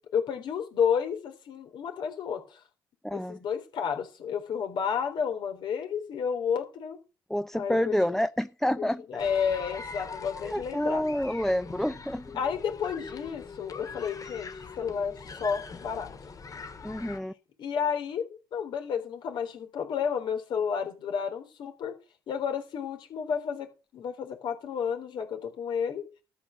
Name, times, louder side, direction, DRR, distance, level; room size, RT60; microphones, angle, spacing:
voice 1, 0.1-2.6 3.1-7.0 7.5-8.1 8.8-11.0 12.3-14.5 14.8-16.1 17.6-18.2 18.5-21.9 22.3-23.7 23.9-26.0, left 7 dB, 65° left, 5 dB, 3.9 m, -31 dB
voice 2, 3.0-3.4 7.3-9.0 10.4-12.3 16.8-17.3, equal, 5° left, 13 dB, 0.8 m, -28 dB
sound 1, 9.2-17.2, left 4 dB, 45° left, 2.6 m, -42 dB
13.0 x 5.9 x 7.3 m, 0.31 s
hypercardioid pair, 55°, 8 cm